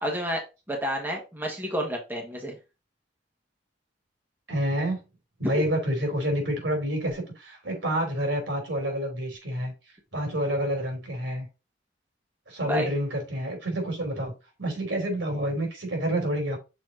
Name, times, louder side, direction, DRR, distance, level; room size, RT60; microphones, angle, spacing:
voice 1, 0.0-0.4 0.7-2.6 12.6-12.9, equal, 10° right, 0 dB, 1.5 m, -30 dB
voice 2, 4.5-5.0 5.4-9.7 10.1-11.5 12.5-16.6, right 1 dB, 85° right, 3 dB, 3.2 m, -28 dB
6.4 x 4.2 x 3.8 m, 0.28 s
head